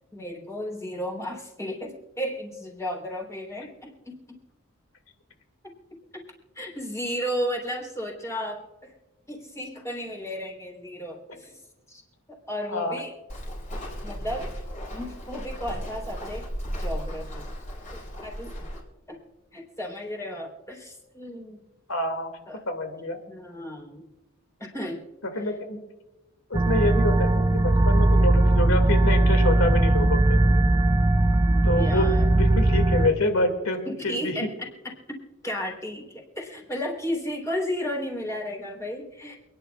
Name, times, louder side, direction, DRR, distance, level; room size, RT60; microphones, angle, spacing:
voice 1, 0.1-4.4 5.6-5.7 6.1-6.2 6.6-8.9 9.3-11.6 11.9-12.0 12.3-13.1 14.0-14.5 14.9-16.5 16.8-17.5 18.2-18.5 19.1-19.2 19.5-21.6 22.5-22.6 23.3-24.1 24.6-25.0 25.4-25.5 31.4-32.3 33.9-34.7 35.4-39.4, equal, 15° left, -1 dB, 3.6 m, -34 dB
Walk footsteps, 13.3-18.8, equal, 35° left, 5.5 m, -35 dB
voice 2, 21.9-22.3 22.7-23.2 25.2-25.8 26.5-30.4 31.6-34.3, left 1 dB, 90° left, 6 dB, 2.3 m, -27 dB
sound 1, 26.5-33.1, right 2 dB, 20° right, 0.4 m, -19 dB
28.5 x 10.5 x 2.4 m, 1.1 s
head